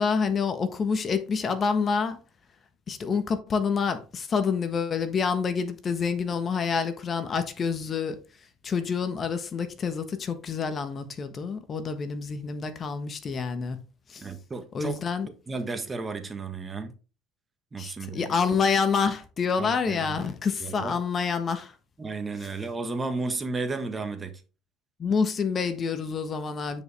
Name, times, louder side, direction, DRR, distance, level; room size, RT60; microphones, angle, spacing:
voice 1, 0.0-2.2 2.9-8.2 8.6-13.8 14.1-14.2 14.7-15.3 17.8-21.7 25.0-26.8, left 5 dB, 40° left, 1.2 m, -27 dB
voice 2, 14.2-15.0 15.5-16.9 17.7-18.3 19.6-21.0 22.0-24.3, right 3 dB, 25° right, 1.4 m, -33 dB
9.3 x 5.3 x 3.4 m
supercardioid pair, 85°, 0 cm